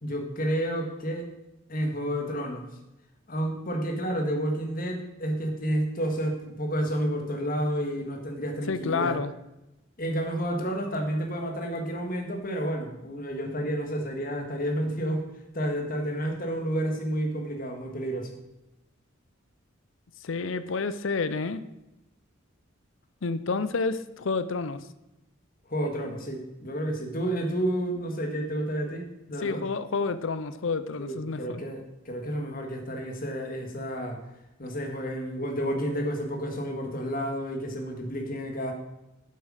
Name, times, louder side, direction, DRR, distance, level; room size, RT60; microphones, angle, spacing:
voice 1, 0.0-1.3 1.7-2.7 3.3-9.2 10.0-15.2 15.5-18.3 25.7-29.6 31.0-34.2 34.6-38.7, equal, 45° left, 3 dB, 1.8 m, -30 dB
voice 2, 8.7-9.3 20.2-21.6 23.2-24.8 29.4-31.6, left 4 dB, 65° left, 13 dB, 0.6 m, -29 dB
8.3 x 7.4 x 6.4 m, 0.93 s
head